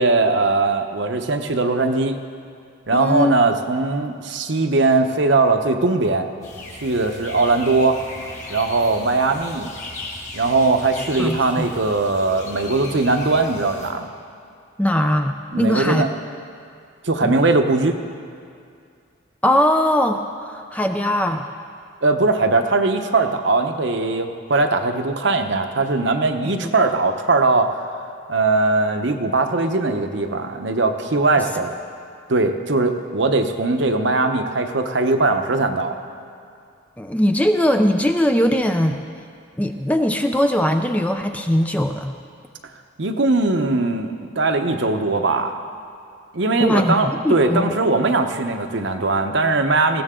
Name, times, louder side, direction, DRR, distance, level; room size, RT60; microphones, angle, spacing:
voice 1, 0.0-2.2 2.9-6.3 6.8-8.0 8.5-9.7 10.3-14.1 15.5-16.1 17.0-17.9 22.0-27.7 28.3-31.7 32.3-35.9 43.0-45.6 46.3-50.0, right 3 dB, 60° right, 6 dB, 0.8 m, -20 dB
voice 2, 2.9-3.4 11.2-11.7 14.8-16.1 17.2-17.3 19.4-21.5 26.6-26.7 37.0-39.0 39.6-42.2 46.6-47.7, equal, 5° left, 5 dB, 0.4 m, -20 dB
sound 1, 6.4-13.9, left 2 dB, 35° left, 2.1 m, -37 dB
20.0 x 15.5 x 3.7 m, 2.3 s
head